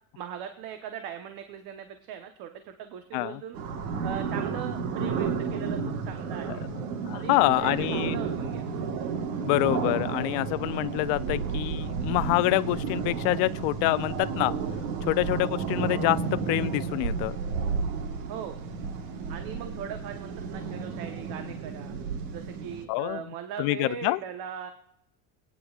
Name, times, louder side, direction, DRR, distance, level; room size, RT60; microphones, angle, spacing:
voice 1, 0.2-3.6 4.0-6.6 7.1-8.7 14.9-15.1 18.3-18.6 19.3-21.9 22.3-24.7, right 9 dB, 55° right, 7 dB, 1.0 m, -39 dB
sound 1, 3.5-22.8, right 5 dB, 85° right, 1.5 m, -32 dB
voice 2, 6.5-8.2 9.4-14.6 15.1-17.4 19.3-19.4 22.9-23.2 23.6-24.2, left 20 dB, 65° left, 17 dB, 0.5 m, -26 dB
26.5 x 9.5 x 2.4 m, 0.81 s
cardioid pair, 140°, 43 cm